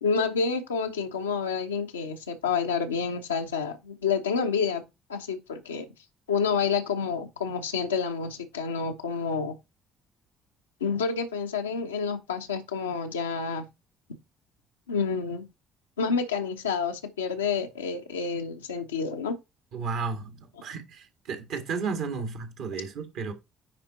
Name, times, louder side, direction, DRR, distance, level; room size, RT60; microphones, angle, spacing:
voice 1, 0.0-4.8 5.1-5.9 6.3-9.5 10.8-13.6 14.9-15.5 16.0-19.3, left 5 dB, 80° left, 1.0 m, -29 dB
voice 2, 19.7-23.3, right 5 dB, 60° right, 1.8 m, -33 dB
9.9 x 4.4 x 4.1 m
figure-of-eight pair, 50°, 0 cm